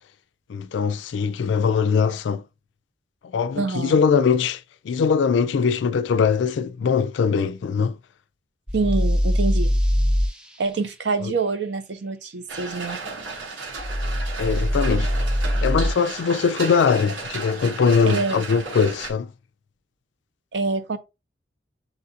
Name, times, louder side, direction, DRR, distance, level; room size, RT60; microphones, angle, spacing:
voice 1, 0.5-2.4 3.3-8.0 11.2-11.3 14.4-15.1 15.6-19.3, left 6 dB, 75° left, 0.3 m, -21 dB
voice 2, 3.5-4.0 8.7-9.7 10.6-13.0 18.0-18.4 20.5-21.0, right 4 dB, 70° right, 0.6 m, -26 dB
sound 1, 8.7-10.3 13.8-15.9, equal, 5° right, 0.4 m, -22 dB
sound 2, 12.5-19.1, right 4 dB, 85° right, 1.1 m, -34 dB
6.8 x 2.4 x 2.7 m
head